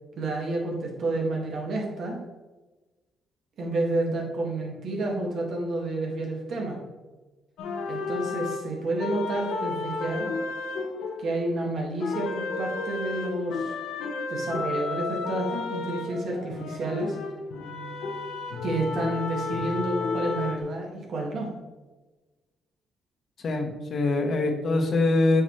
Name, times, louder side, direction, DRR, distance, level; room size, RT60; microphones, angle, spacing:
voice 1, 0.2-2.2 3.6-6.8 7.9-10.3 11.2-13.7 14.3-17.2 18.6-21.5, right 2 dB, 65° right, -1 dB, 2.0 m, -30 dB
sound 1, 7.6-11.7 12.0-20.6, left 3 dB, 85° left, 1.0 m, -32 dB
voice 2, 23.4-25.4, left 2 dB, 50° left, 4 dB, 1.1 m, -23 dB
8.5 x 5.1 x 3.2 m, 1.2 s
cardioid pair, 90°, 0 cm